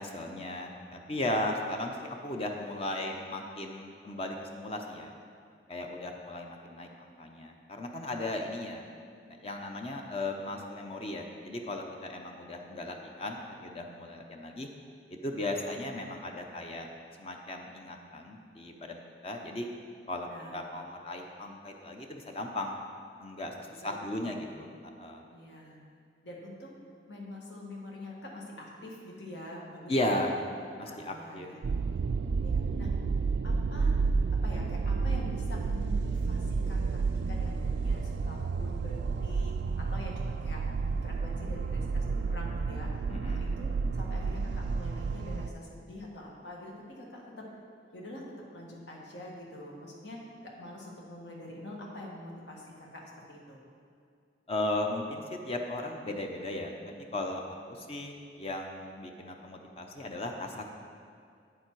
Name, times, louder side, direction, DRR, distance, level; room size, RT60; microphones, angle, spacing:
voice 1, 0.0-5.1 5.7-8.8 9.3-14.7 15.1-16.9 17.2-19.7 20.1-22.8 23.2-23.5 23.8-24.7 25.0-25.2 29.9-30.3 30.8-31.5 43.1-43.5 54.5-60.7, left 1 dB, 35° left, 2 dB, 0.6 m, -36 dB
voice 2, 20.2-20.6 23.8-24.4 25.3-25.8 26.2-26.8 27.1-30.2 30.8-31.6 32.4-32.9 33.4-34.0 34.3-40.7 41.0-47.5 47.9-53.6, left 1 dB, 80° left, -2 dB, 1.6 m, -45 dB
sound 1, 31.6-45.5, right 4 dB, 70° right, 0.3 m, -30 dB
8.6 x 7.1 x 4.6 m, 2.3 s
head